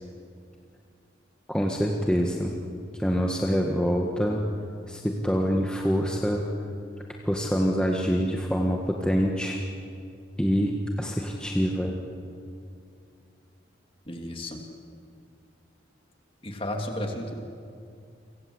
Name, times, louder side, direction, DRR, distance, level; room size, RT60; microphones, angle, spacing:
voice 1, 1.5-2.5 3.0-4.4 4.9-6.4 7.2-9.6 10.4-12.0, equal, 5° left, 0 dB, 1.6 m, -25 dB
voice 2, 14.1-14.6 16.4-17.3, left 1 dB, 30° left, 3 dB, 2.7 m, -33 dB
29.5 x 25.5 x 8.0 m, 2.4 s
head